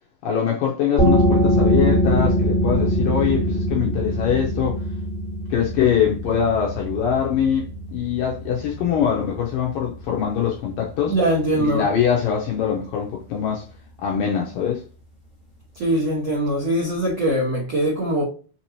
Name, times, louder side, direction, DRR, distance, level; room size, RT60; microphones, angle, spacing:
voice 1, 0.2-4.8 5.5-11.2 11.5-13.7 14.0-14.8, left 8 dB, 80° left, 2.1 m, -23 dB
sound 1, 1.0-12.3, equal, 25° left, 1.2 m, -23 dB
voice 2, 11.1-11.9 15.7-18.2, right 1 dB, 75° right, 1.4 m, -22 dB
6.1 x 2.9 x 2.9 m
omnidirectional pair, 4.8 m